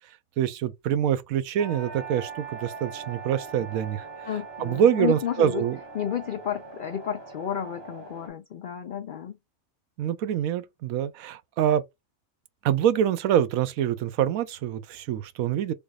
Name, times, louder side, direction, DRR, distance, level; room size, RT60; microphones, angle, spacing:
voice 1, 0.4-4.1 4.6-5.8 10.0-11.8 12.6-15.7, right 10 dB, 85° right, 1.0 m, -25 dB
sound 1, 1.6-8.3, right 4 dB, 25° right, 0.7 m, -41 dB
voice 2, 4.2-5.6 5.9-9.4, left 9 dB, 85° left, 0.4 m, -31 dB
3.4 x 3.3 x 2.4 m
omnidirectional pair, 1.4 m